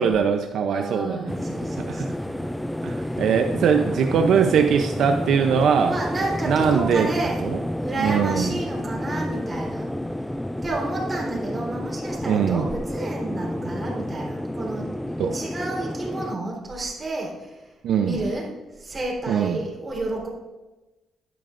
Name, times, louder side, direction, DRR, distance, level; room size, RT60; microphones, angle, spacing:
voice 1, 0.0-1.3 1.8-2.1 2.8-5.9 6.5-7.1 7.4-7.6 8.0-8.6 12.3-12.7 15.2-15.4 17.8-18.2 19.3-19.6, right 7 dB, 75° right, 5 dB, 0.5 m, -21 dB
voice 2, 0.7-2.5 3.0-3.2 3.5-4.5 5.8-7.4 7.8-9.9 10.6-14.9 15.3-17.6 18.0-18.5 18.8-20.3, right 2 dB, 25° right, -2 dB, 3.7 m, -31 dB
sound 1, 1.3-16.4, left 1 dB, 5° left, 0.3 m, -30 dB
13.5 x 11.0 x 2.5 m, 1.1 s
cardioid pair, 120°, 0 cm